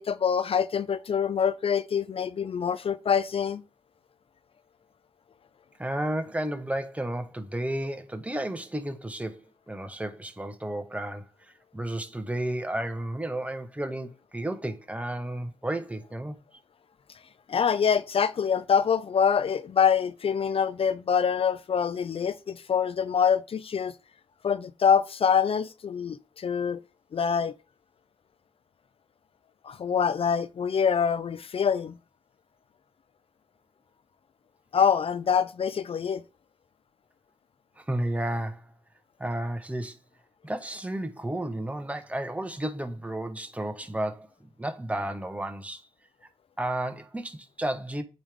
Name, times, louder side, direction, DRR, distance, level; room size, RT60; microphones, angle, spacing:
voice 1, 0.0-3.6 17.5-23.9 24.4-26.8 27.1-27.5 29.6-32.0 34.7-36.2, left 7 dB, 60° left, 0.5 m, -25 dB
voice 2, 5.8-11.3 11.7-16.4 37.8-38.7 39.2-40.0 40.4-45.8 46.6-48.0, right 1 dB, 10° right, 1.3 m, -32 dB
8.7 x 3.4 x 3.7 m
supercardioid pair, 45°, 11 cm